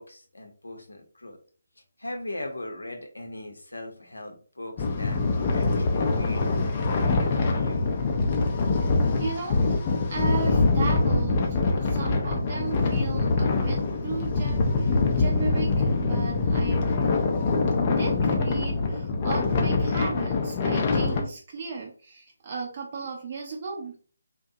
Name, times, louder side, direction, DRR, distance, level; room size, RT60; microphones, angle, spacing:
voice 1, 0.0-1.4 2.0-5.2 5.5-7.9, left 1 dB, 70° left, 4 dB, 0.7 m, -39 dB
sound 1, 4.8-21.2, left 3 dB, 30° left, 0.4 m, -24 dB
voice 2, 9.2-9.6 10.1-17.0 17.9-23.9, right 4 dB, 35° right, -1 dB, 0.5 m, -35 dB
2.6 x 2.2 x 2.6 m, 0.41 s
figure-of-eight pair, 145°, 0 cm